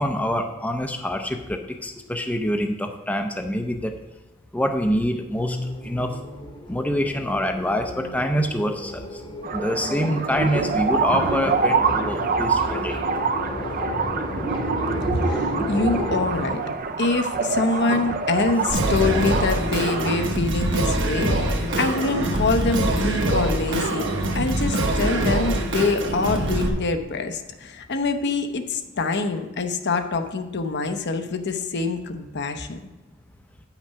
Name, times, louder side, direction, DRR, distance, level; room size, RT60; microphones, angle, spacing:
voice 1, 0.0-3.9 4.5-5.6 5.8-6.1 6.7-8.9 9.5-13.0, equal, 5° left, 4 dB, 0.5 m, -25 dB
sound 1, 5.3-16.8, left 1 dB, 25° left, 1.0 m, -33 dB
sound 2, 9.4-20.1, right 4 dB, 45° right, 0.5 m, -26 dB
voice 2, 15.1-16.6 17.0-32.8, left 3 dB, 55° left, 7 dB, 0.8 m, -25 dB
Singing, 18.7-26.7, right 1 dB, 60° right, 1.3 m, -24 dB
9.2 x 5.9 x 5.6 m, 1.0 s
head